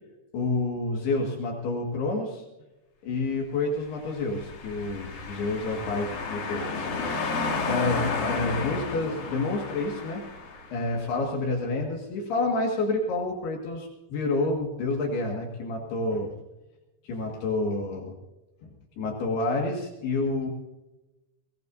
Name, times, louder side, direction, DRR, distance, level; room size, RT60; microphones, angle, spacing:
voice 1, 0.3-2.4 3.0-6.9 7.6-10.2 10.7-16.3 17.0-18.2 18.6-20.5, left 2 dB, 65° left, 0 dB, 3.8 m, -29 dB
sound 1, 4.1-10.8, left 4 dB, 45° left, 2.8 m, -32 dB
22.5 x 18.0 x 2.7 m, 1.0 s
omnidirectional pair, 5.1 m